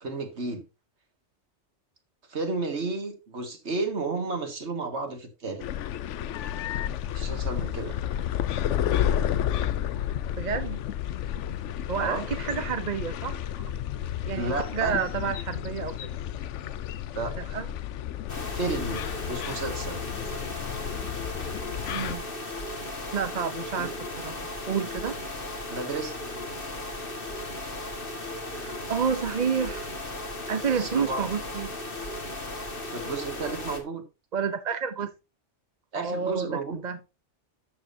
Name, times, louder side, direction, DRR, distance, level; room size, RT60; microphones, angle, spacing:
voice 1, 0.0-0.6 2.3-5.7 7.1-8.0 12.0-12.3 14.3-15.0 17.1-17.6 18.5-20.0 23.8-23.9 25.7-26.1 30.8-31.3 32.5-34.0 35.9-36.8, right 3 dB, 65° right, 2.2 m, -32 dB
sound 1, 5.6-22.2, left 10 dB, 80° left, 0.9 m, -31 dB
voice 2, 10.4-10.8 11.9-13.4 14.2-16.0 17.4-17.7 21.9-22.2 23.1-24.3 24.7-25.2 28.5-29.9 30.5-31.7 34.3-35.1 35.9-36.5 36.8-37.1, right 6 dB, 40° right, 0.8 m, -29 dB
sound 2, 18.3-33.8, left 2 dB, 50° left, 2.1 m, -36 dB
12.5 x 7.5 x 2.7 m
omnidirectional pair, 1.2 m